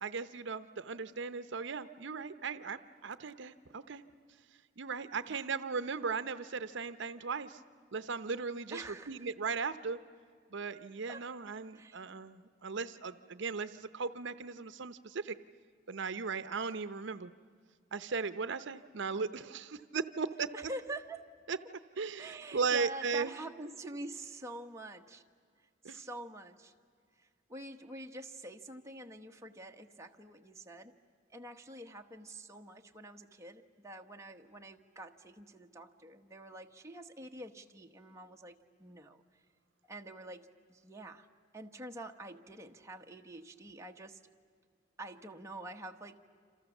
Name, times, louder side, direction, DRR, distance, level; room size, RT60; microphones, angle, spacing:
voice 1, 0.0-4.0 4.8-7.6 7.9-10.0 10.5-15.4 15.9-17.3 17.9-20.5 21.5-21.6 22.0-23.3 25.8-26.0, right 5 dB, 65° right, 12 dB, 0.7 m, -37 dB
voice 2, 8.7-9.3 11.1-11.3 11.7-12.0 20.5-21.2 22.2-25.2 25.8-26.7 27.2-30.9 31.3-39.2 39.8-41.3 41.5-44.2 45.0-46.2, right 2 dB, 15° right, 3 dB, 1.1 m, -46 dB
28.5 x 27.0 x 7.2 m, 2.1 s
head